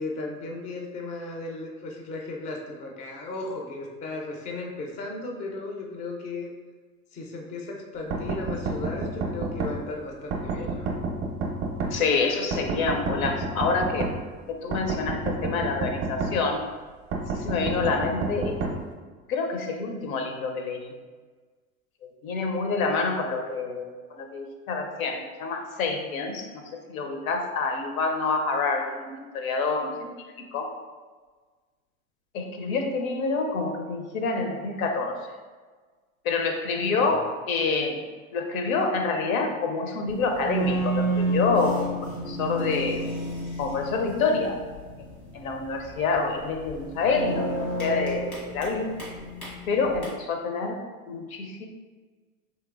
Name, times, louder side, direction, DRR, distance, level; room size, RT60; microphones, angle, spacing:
voice 1, 0.0-6.5 7.1-10.9 36.8-37.2, left 2 dB, 20° left, 0 dB, 0.3 m, -35 dB
sound 1, 8.1-9.7 10.3-11.9 12.5-14.1 14.7-16.3 17.1-18.7, right 3 dB, 30° right, 0.5 m, -29 dB
voice 2, 11.9-14.1 14.5-16.7 17.4-18.7 19.3-20.9 22.0-23.9 24.2-30.1 30.5-30.7 32.3-35.2 36.2-37.2 37.5-38.0 38.3-42.0 42.3-43.0 43.6-44.6 45.3-48.9 49.7-50.8 51.1-51.7, left 4 dB, 70° left, 4 dB, 0.6 m, -27 dB
sound 2, 40.1-50.0, right 1 dB, 90° left, 1.4 m, -31 dB
3.1 x 2.9 x 2.4 m, 1.4 s
figure-of-eight pair, 80°, 43 cm